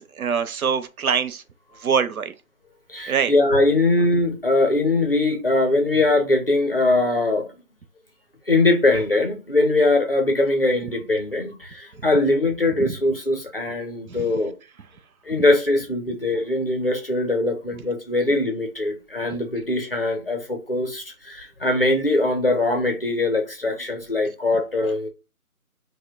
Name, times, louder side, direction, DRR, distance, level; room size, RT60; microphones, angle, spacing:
voice 1, 0.0-1.4 1.8-2.3 3.1-3.3 12.8-12.9 14.1-14.3, right 6 dB, 75° right, 0.5 m, -24 dB
voice 2, 2.9-7.5 8.5-14.5 15.3-25.1, left 2 dB, 40° left, 0.6 m, -21 dB
2.5 x 2.1 x 3.7 m
figure-of-eight pair, 165°, 44 cm